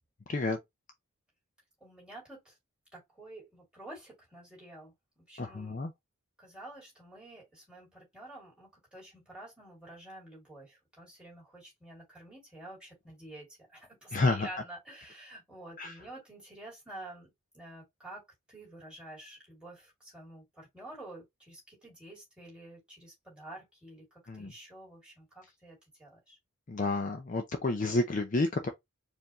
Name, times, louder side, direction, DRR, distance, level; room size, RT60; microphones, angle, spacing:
voice 1, 0.3-0.6 5.4-5.9 14.1-14.5 15.8-15.9 24.3-24.5 26.7-28.7, left 2 dB, 35° left, 0.5 m, -30 dB
voice 2, 1.8-2.6 2.9-5.8 6.4-18.2 18.5-26.4, right 1 dB, 5° right, 2.3 m, -49 dB
4.5 x 2.6 x 3.0 m
head